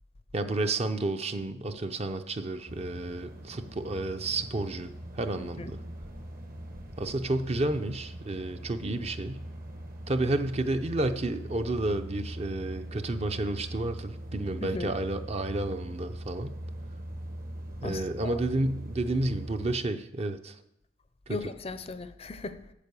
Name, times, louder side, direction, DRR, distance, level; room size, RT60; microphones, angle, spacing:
voice 1, 0.3-5.8 7.0-9.4 10.1-16.5 17.8-20.6 21.3-21.4, right 2 dB, 35° right, 0.6 m, -31 dB
sound 1, 2.7-19.8, right 1 dB, 50° right, 1.3 m, -41 dB
voice 2, 5.4-5.7 14.6-14.9 17.8-18.3 21.3-22.6, left 3 dB, 35° left, 0.5 m, -37 dB
8.4 x 7.3 x 6.9 m
head